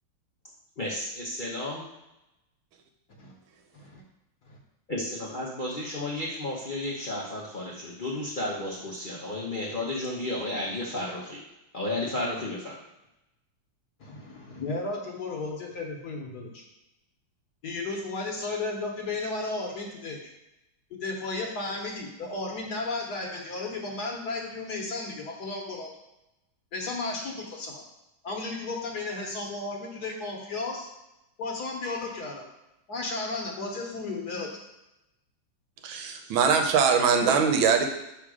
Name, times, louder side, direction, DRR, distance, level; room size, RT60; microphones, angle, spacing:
voice 1, 0.8-1.8 4.9-11.4 11.7-12.8, left 1 dB, 85° left, -6 dB, 0.4 m, -32 dB
voice 2, 14.0-16.6 17.6-20.2 21.0-25.9 26.7-27.8 28.2-30.9 31.4-32.4 32.9-34.5, left 3 dB, 55° left, 0 dB, 1.3 m, -34 dB
voice 3, 35.8-37.9, right 6 dB, 75° right, 5 dB, 1.5 m, -22 dB
6.2 x 3.6 x 4.8 m, 0.91 s
omnidirectional pair, 2.3 m